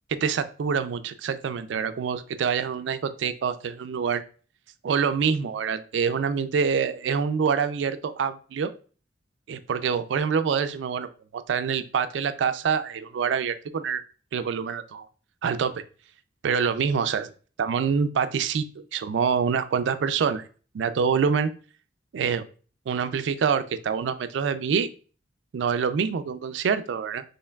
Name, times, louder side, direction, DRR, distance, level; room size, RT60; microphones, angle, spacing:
voice 1, 0.1-4.2 4.8-8.7 9.5-11.1 11.3-14.0 14.3-15.0 15.4-15.7 16.4-17.3 17.6-18.7 18.9-20.5 20.7-21.5 22.1-22.5 22.9-24.9 25.5-27.2, right 6 dB, 80° right, 11 dB, 0.3 m, -26 dB
4.3 x 3.2 x 2.3 m, 0.39 s
head